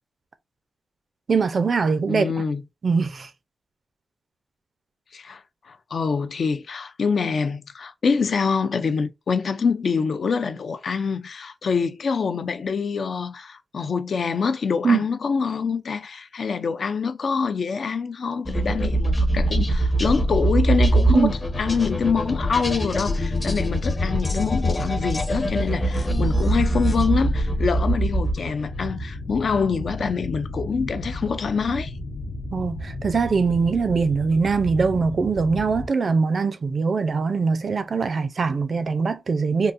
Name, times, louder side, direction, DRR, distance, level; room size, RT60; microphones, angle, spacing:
voice 1, 1.3-2.3 2.8-3.3 14.8-15.0 21.1-21.3 32.5-39.7, right 4 dB, 55° right, 0.4 m, -22 dB
voice 2, 2.1-2.6 5.1-31.9, left 5 dB, 65° left, 0.4 m, -25 dB
sound 1, 18.5-28.6, right 1 dB, 30° left, 0.7 m, -23 dB
sound 2, 19.4-35.9, left 1 dB, 85° left, 0.8 m, -34 dB
3.7 x 2.3 x 2.5 m
wide cardioid pair, 120°, 0 cm